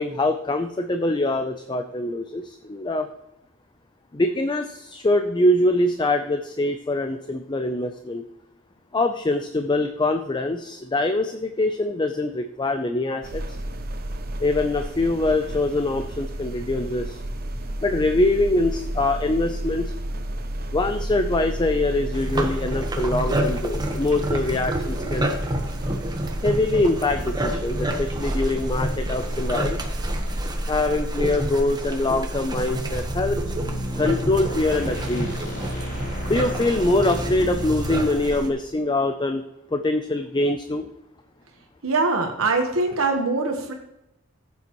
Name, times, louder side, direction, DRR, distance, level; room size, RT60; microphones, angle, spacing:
voice 1, 0.0-3.1 4.1-8.3 8.9-13.6 14.4-17.2 17.8-19.9 20.7-25.3 26.4-29.9 30.7-33.4 34.0-35.3 36.2-39.4 39.7-40.9, left 2 dB, 20° left, 7 dB, 0.5 m, -24 dB
sound 1, 13.2-30.4, right 1 dB, 50° right, 0.9 m, -32 dB
sound 2, 22.1-38.5, right 1 dB, 20° right, 1.1 m, -29 dB
sound 3, 32.9-38.0, equal, 45° left, 3.7 m, -32 dB
voice 2, 41.8-43.7, right 3 dB, 80° right, 3 dB, 1.2 m, -23 dB
14.5 x 8.5 x 3.0 m, 0.87 s
head